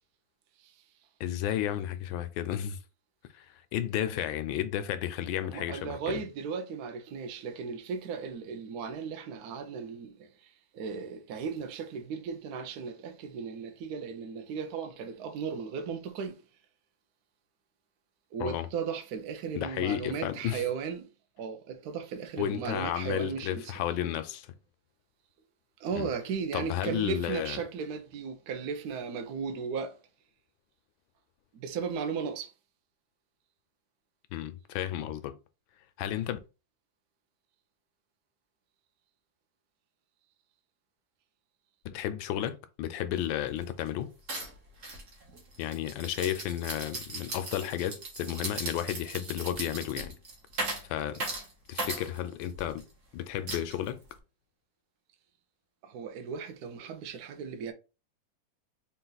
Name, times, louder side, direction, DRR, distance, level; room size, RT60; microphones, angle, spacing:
voice 1, 1.2-2.8 3.3-6.2 18.4-18.7 19.6-20.6 22.4-24.5 26.0-26.1 26.5-27.6 34.3-35.4 36.0-36.4 41.8-44.1 45.6-50.1 50.9-51.2 51.7-52.8 53.1-54.0, left 11 dB, 85° left, 1.3 m, -32 dB
voice 2, 5.4-16.4 18.3-21.1 21.4-23.7 25.8-30.0 31.5-32.5 55.8-57.7, right 6 dB, 65° right, 1.1 m, -36 dB
sound 1, 43.2-43.3 43.5-43.9 44.3-52.8 53.5-54.2, right 2 dB, 45° right, 1.3 m, -38 dB
4.0 x 2.5 x 3.9 m
omnidirectional pair, 2.1 m